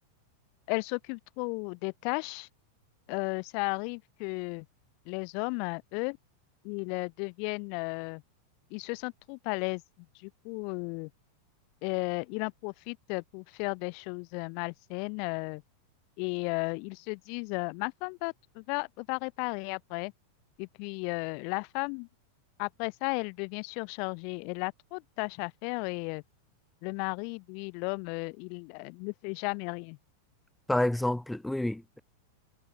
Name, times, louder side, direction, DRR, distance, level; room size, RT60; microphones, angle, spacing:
voice 1, 0.7-2.5 3.1-4.6 5.0-6.2 6.6-8.2 8.7-9.8 10.2-11.1 11.8-15.6 16.2-20.1 20.6-22.1 22.6-26.2 26.8-30.0, left 40 dB or more, 45° left, 3.1 m, -34 dB
voice 2, 30.7-32.0, left 1 dB, 5° left, 2.7 m, -29 dB
figure-of-eight pair, 90°, 0 cm